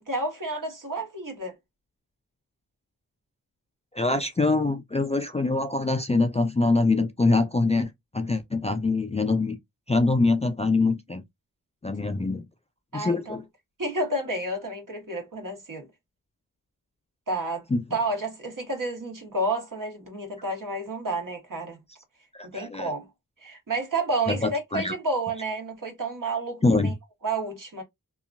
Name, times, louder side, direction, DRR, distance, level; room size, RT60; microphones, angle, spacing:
voice 1, 0.1-1.5 12.9-13.4 13.8-15.9 17.3-17.7 17.9-21.8 22.4-23.1 23.4-26.9 27.2-27.8, right 2 dB, 60° right, 1.2 m, -30 dB
voice 2, 3.9-7.9 8.1-9.6 9.9-11.2 11.8-12.4 12.9-13.4 17.7-17.8 22.3-22.9 24.3-24.9 26.6-26.9, left 3 dB, 20° left, 0.3 m, -24 dB
2.8 x 2.3 x 2.5 m
wide cardioid pair, 95°, 36 cm